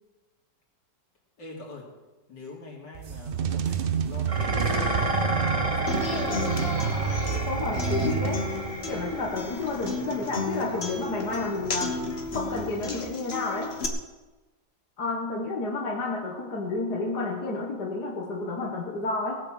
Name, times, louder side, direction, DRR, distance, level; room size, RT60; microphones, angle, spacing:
voice 1, 1.4-1.9 2.3-5.0 5.6-6.4, left 2 dB, 85° left, -2 dB, 3.8 m, -43 dB
sound 1, 2.9-8.9, right 6 dB, 65° right, 0.5 m, -29 dB
Dishes pots and pans, 4.3-13.1, right 2 dB, 20° right, 1.3 m, -33 dB
Human voice / Acoustic guitar, 5.9-13.9, left 3 dB, 40° left, 1.5 m, -33 dB
voice 2, 7.5-8.4 8.9-11.9 12.3-13.7 15.0-19.4, left 3 dB, 70° left, -1 dB, 2.1 m, -30 dB
18.0 x 7.8 x 7.6 m, 1.2 s
omnidirectional pair, 1.8 m